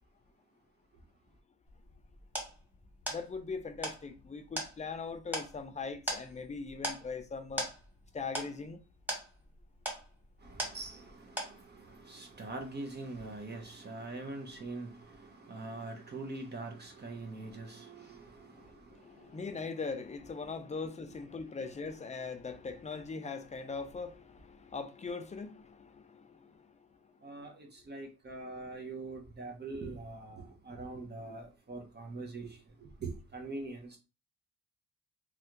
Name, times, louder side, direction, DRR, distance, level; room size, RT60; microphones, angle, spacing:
sound 1, 1.7-11.1 11.4-11.9, right 1 dB, 5° right, 1.4 m, -40 dB
voice 1, 3.1-7.7 8.1-8.8 18.5-26.9 27.4-27.5, left 4 dB, 25° left, 0.5 m, -41 dB
voice 2, 10.4-19.4 27.2-34.0, right 3 dB, 35° right, 0.9 m, -43 dB
3.3 x 2.4 x 2.9 m
cardioid pair, 90°, 30 cm